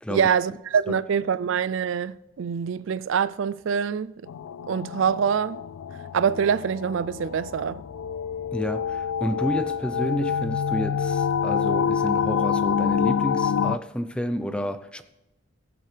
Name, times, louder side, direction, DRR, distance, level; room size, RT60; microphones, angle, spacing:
voice 1, 0.1-4.1 4.7-5.6 6.1-7.8, right 7 dB, 65° right, 0.4 m, -25 dB
sound 1, 4.3-13.8, left 7 dB, 85° left, 0.3 m, -27 dB
voice 2, 8.5-15.0, equal, 5° left, 0.5 m, -30 dB
21.0 x 7.7 x 3.3 m
head